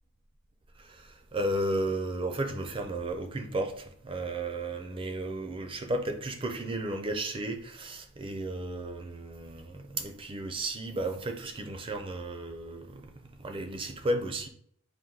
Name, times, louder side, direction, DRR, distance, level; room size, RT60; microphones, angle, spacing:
voice 1, 0.8-14.5, right 1 dB, 25° right, 0.4 m, -34 dB
4.2 x 2.5 x 3.8 m
head